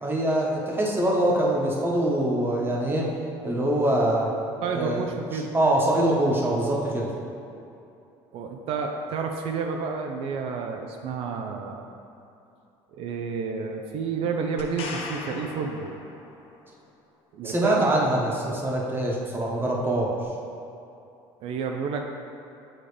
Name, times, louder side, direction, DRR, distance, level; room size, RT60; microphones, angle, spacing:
voice 1, 0.0-3.1 3.4-4.3 4.7-5.0 5.5-7.1 17.4-20.1, right 1 dB, 20° right, -3 dB, 1.2 m, -24 dB
voice 2, 4.6-5.5 8.3-11.9 12.9-15.9 17.3-17.8 21.4-22.0, right 5 dB, 60° right, 2 dB, 0.5 m, -30 dB
sound 1, 14.6-16.6 20.2-20.3, left 3 dB, 60° left, 0.8 m, -38 dB
8.6 x 3.7 x 3.4 m, 2.7 s
supercardioid pair, 100°, 11 cm